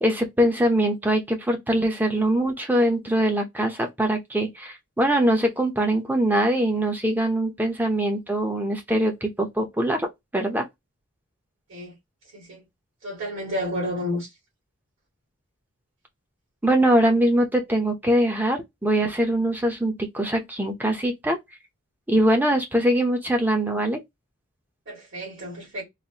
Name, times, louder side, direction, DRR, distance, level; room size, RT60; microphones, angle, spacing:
voice 1, 0.0-10.1 10.3-10.7 16.6-21.4 22.1-24.0, right 1 dB, 10° right, 0.7 m, -22 dB
voice 2, 12.3-12.6 13.0-14.3 24.9-25.8, equal, 60° right, 2.2 m, -31 dB
4.0 x 2.6 x 2.9 m
head